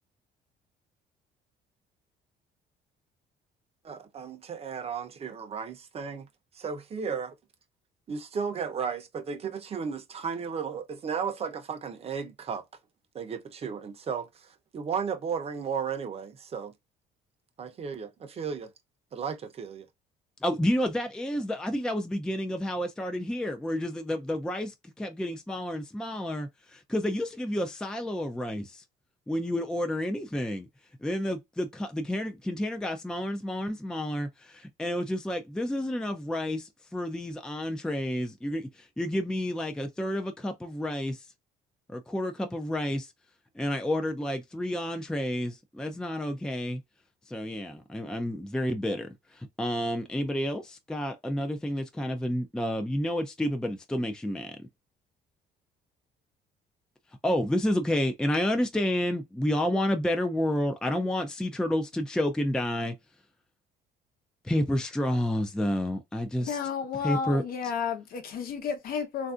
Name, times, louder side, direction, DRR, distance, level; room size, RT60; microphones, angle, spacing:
voice 1, 3.8-6.3 6.5-7.3 8.1-12.6 13.1-16.7 17.6-18.7 19.1-19.9, right 6 dB, 35° right, 0.7 m, -34 dB
voice 2, 20.4-28.8 29.3-30.7 31.0-41.3 41.9-43.1 43.6-46.8 47.3-54.6 57.2-62.9 64.4-66.6 66.9-67.7, left 1 dB, 5° left, 0.4 m, -30 dB
voice 3, 66.5-69.3, left 6 dB, 60° left, 0.9 m, -32 dB
3.3 x 2.6 x 2.4 m
cardioid pair, 110°, 17 cm